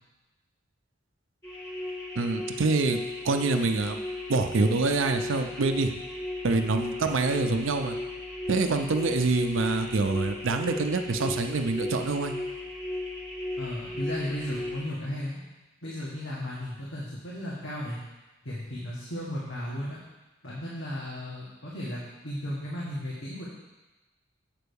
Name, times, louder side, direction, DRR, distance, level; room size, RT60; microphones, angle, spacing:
sound 1, 1.4-14.8, left 1 dB, 20° left, 3.3 m, -36 dB
voice 1, 2.2-3.0 3.2-4.0 4.3-6.0 6.4-8.0 8.5-12.3, right 3 dB, 80° right, 6 dB, 0.6 m, -26 dB
voice 2, 13.6-15.4 15.8-18.0 18.4-20.0 20.4-23.5, left 1 dB, 85° left, -6 dB, 1.7 m, -35 dB
7.6 x 4.6 x 6.9 m, 1.1 s
head